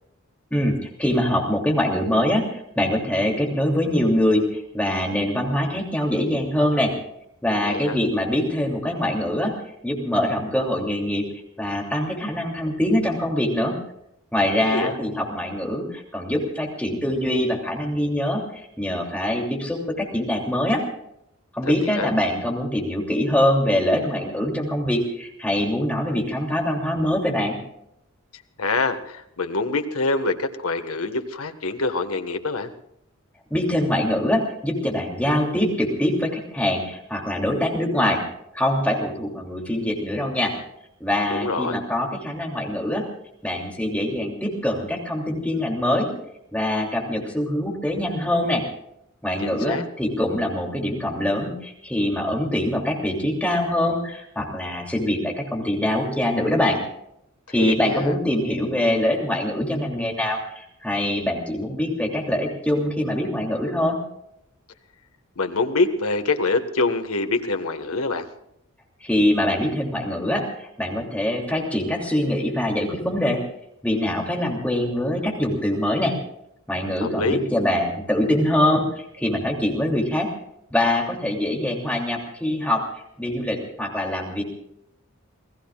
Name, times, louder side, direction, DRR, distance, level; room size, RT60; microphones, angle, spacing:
voice 1, 0.5-6.9 7.4-9.5 9.8-11.2 11.6-13.7 14.3-20.8 21.5-27.6 33.5-38.2 38.5-40.5 41.0-43.0 43.4-46.1 46.5-48.6 49.2-56.8 57.5-64.0 69.0-73.4 73.8-76.1 76.7-80.3 80.7-82.8 83.2-84.4, left 1 dB, 5° left, -1 dB, 3.0 m, -24 dB
voice 2, 7.6-8.0 14.6-14.9 22.0-22.1 28.6-32.7 41.3-41.8 49.4-49.8 57.6-58.1 65.4-68.3 77.0-77.4, left 3 dB, 90° left, 7 dB, 1.6 m, -25 dB
28.5 x 19.0 x 2.5 m, 0.77 s
head